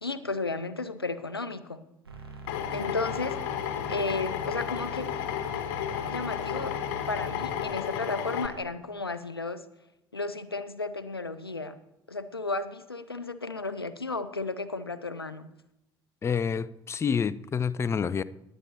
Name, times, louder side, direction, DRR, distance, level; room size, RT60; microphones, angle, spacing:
voice 1, 0.0-1.8 2.7-3.4 3.9-5.1 6.1-6.7 7.1-9.6 10.1-11.8 12.1-15.5, left 3 dB, 90° left, 0.5 m, -33 dB
sound 1, 2.0-7.6, right 2 dB, 85° right, 1.5 m, -43 dB
Drill, 2.5-8.5, left 9 dB, 60° left, 1.2 m, -33 dB
voice 2, 16.2-18.2, left 6 dB, 20° left, 0.4 m, -28 dB
19.5 x 8.8 x 2.8 m
figure-of-eight pair, 60°, 12 cm